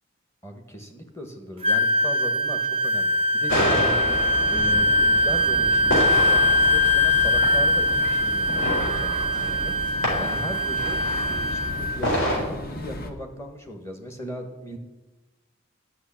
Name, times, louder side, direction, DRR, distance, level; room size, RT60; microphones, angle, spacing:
voice 1, 0.4-4.0 4.5-9.9 10.2-11.0 11.3-14.8, equal, 15° left, 4 dB, 1.4 m, -37 dB
Wind instrument woodwind instrument, 1.6-12.0, left 1 dB, 25° right, 0.4 m, -22 dB
sound 1, 3.5-12.4, equal, 65° left, 4.1 m, -29 dB
sound 2, 3.8-13.1, left 1 dB, 45° left, 1.1 m, -35 dB
11.0 x 6.3 x 8.9 m, 1.1 s
head